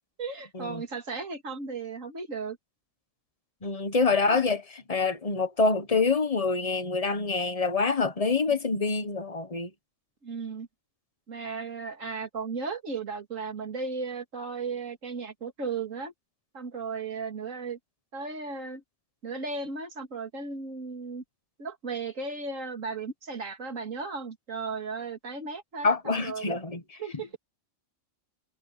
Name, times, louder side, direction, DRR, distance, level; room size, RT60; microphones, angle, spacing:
voice 1, 0.2-2.6 4.2-4.4 10.2-10.7 11.3-16.1 16.5-17.8 18.1-18.8 19.2-21.2 21.6-26.6 27.0-27.4, right 4 dB, 80° right, 2.8 m, -35 dB
voice 2, 3.6-9.7 25.8-27.0, left 4 dB, 30° left, 1.3 m, -26 dB
omnidirectional pair, 1.3 m